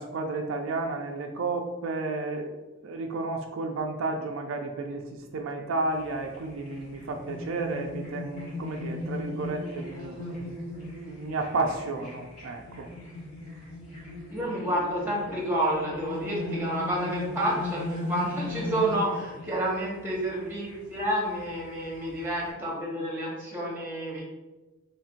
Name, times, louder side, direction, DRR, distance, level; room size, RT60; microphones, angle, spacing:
voice 1, 0.0-2.6 2.8-10.2 10.9-12.9, right 3 dB, 70° right, 3 dB, 0.4 m, -32 dB
sound 1, 5.9-22.5, left 2 dB, 40° left, 1.4 m, -38 dB
voice 2, 14.3-24.2, right 1 dB, 10° right, -4 dB, 1.1 m, -29 dB
3.1 x 2.5 x 4.3 m, 1.1 s
head